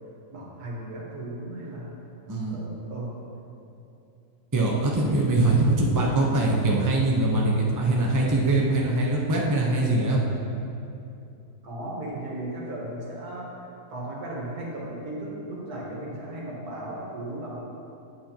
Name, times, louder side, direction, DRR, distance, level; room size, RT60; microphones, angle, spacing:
voice 1, 0.3-1.9 2.5-3.1 11.6-13.5 13.8-17.6, right 1 dB, 80° right, -4 dB, 2.0 m, -36 dB
voice 2, 4.5-10.2, right 2 dB, 20° right, -3 dB, 0.5 m, -22 dB
9.1 x 7.5 x 2.9 m, 2.7 s
omnidirectional pair, 1.6 m